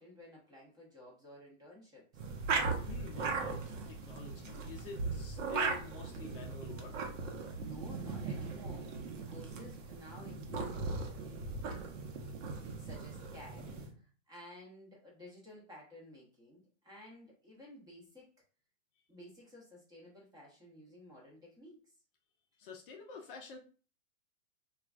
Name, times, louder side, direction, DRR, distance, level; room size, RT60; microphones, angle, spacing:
voice 1, 0.0-2.1 7.6-8.9 9.3-12.0 12.6-18.3 19.1-21.8, equal, 10° right, -3 dB, 0.7 m, -54 dB
sound 1, 2.1-13.9, right 4 dB, 70° right, 0.8 m, -38 dB
voice 2, 2.8-6.9 22.6-23.6, left 6 dB, 45° left, 2 dB, 0.5 m, -48 dB
3.1 x 2.3 x 2.4 m, 0.39 s
hypercardioid pair, 140°, 39 cm